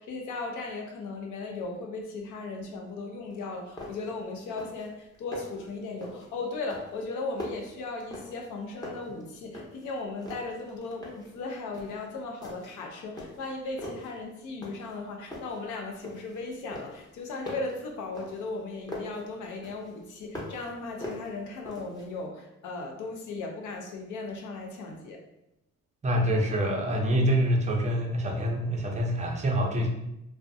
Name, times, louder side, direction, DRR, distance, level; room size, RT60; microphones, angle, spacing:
voice 1, 0.0-25.2, left 3 dB, 80° left, 2 dB, 0.6 m, -37 dB
sound 1, 3.3-3.4 3.8-4.2 4.4-4.9 5.1-5.6 6.0-6.3 6.7-8.5 8.8-9.9 10.2-11.3 11.7-12.0 12.4-12.8 13.2-14.1 14.6-15.0 15.3-16.4 16.7-19.2 19.6-20.7 21.0-22.1, left 1 dB, 15° left, 0.7 m, -41 dB
voice 2, 26.0-29.9, equal, 25° right, 1 dB, 0.5 m, -26 dB
2.5 x 2.1 x 2.5 m, 0.86 s
cardioid pair, 90°, 30 cm